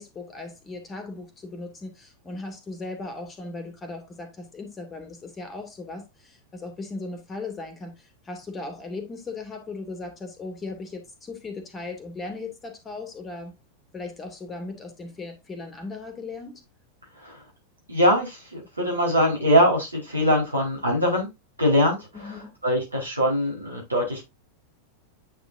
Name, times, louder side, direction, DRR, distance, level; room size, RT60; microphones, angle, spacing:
voice 1, 0.0-13.5 13.9-16.6 22.1-22.5, left 3 dB, 20° left, 2.5 m, -37 dB
voice 2, 17.9-21.3 21.6-22.1 22.6-24.3, equal, 80° right, 4.6 m, -22 dB
9.1 x 6.2 x 2.7 m
figure-of-eight pair, 90°, 0 cm